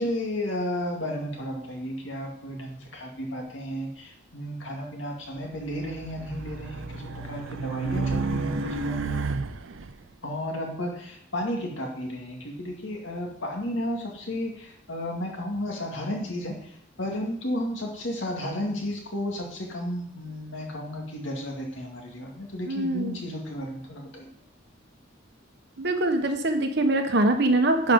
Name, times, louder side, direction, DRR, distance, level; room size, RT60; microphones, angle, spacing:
voice 1, 0.0-9.2 10.2-16.7 17.0-24.3, left 1 dB, 75° left, 1 dB, 2.3 m, -33 dB
Race car auto racing, 5.6-9.9, right 3 dB, 85° right, 0.6 m, -31 dB
voice 2, 22.7-23.2 25.8-27.9, right 2 dB, 60° right, 6 dB, 1.2 m, -23 dB
11.0 x 5.2 x 5.2 m, 0.71 s
head